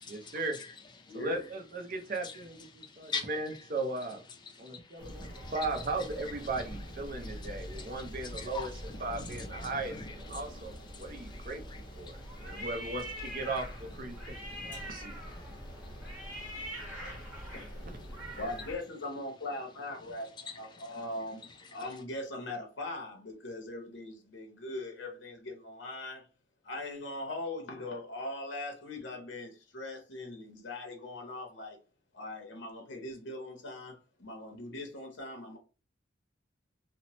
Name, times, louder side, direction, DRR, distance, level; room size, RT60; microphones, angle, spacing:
voice 1, 0.1-0.6 1.1-4.2 4.6-11.6 12.0-15.2, right 2 dB, 45° right, 0.5 m, -37 dB
voice 2, 1.1-1.4 3.0-3.1 17.4-17.8 18.4-26.3 26.6-31.8 32.1-35.6, left 2 dB, 70° left, 0.7 m, -40 dB
voice 3, 2.7-3.3 4.6-5.5 7.1-8.7 9.1-10.0 10.3-10.4 10.9-12.6 14.2-14.9 15.3-17.3, left 4 dB, 25° left, 0.4 m, -45 dB
sound 1, 5.0-18.7, equal, 10° right, 1.1 m, -43 dB
2.9 x 2.0 x 2.9 m
head